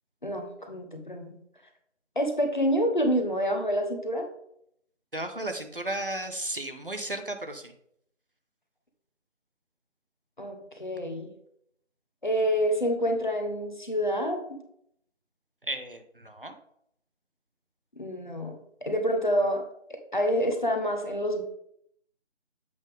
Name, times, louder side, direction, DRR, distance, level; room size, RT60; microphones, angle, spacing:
voice 1, 0.2-1.4 2.1-4.3 10.4-11.3 12.2-14.4 18.0-18.5 18.8-19.6 19.9-21.4, equal, 40° left, 4 dB, 1.1 m, -27 dB
voice 2, 5.1-7.7 15.6-16.5, right 1 dB, 50° right, 7 dB, 0.7 m, -34 dB
7.9 x 5.2 x 3.6 m, 0.71 s
figure-of-eight pair, 175°, 36 cm